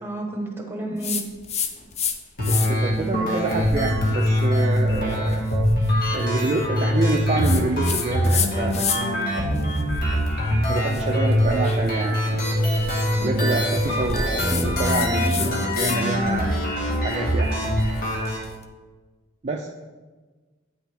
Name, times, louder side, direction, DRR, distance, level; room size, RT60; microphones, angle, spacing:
voice 1, 0.0-1.3 13.2-13.4 15.2-15.5, right 2 dB, 10° right, 1 dB, 1.1 m, -32 dB
sound 1, 1.0-2.2 2.4-2.9 3.4-9.2 9.6-16.0 16.3-18.5, left 7 dB, 35° left, 0.5 m, -32 dB
sound 2, 2.4-18.4, equal, 50° left, 1.7 m, -23 dB
voice 2, 2.5-5.5 6.1-9.8 10.7-12.2 13.2-16.6 17.0-17.5 19.4-19.7, right 2 dB, 35° right, 1 dB, 0.4 m, -27 dB
8.4 x 6.2 x 3.4 m, 1.3 s
head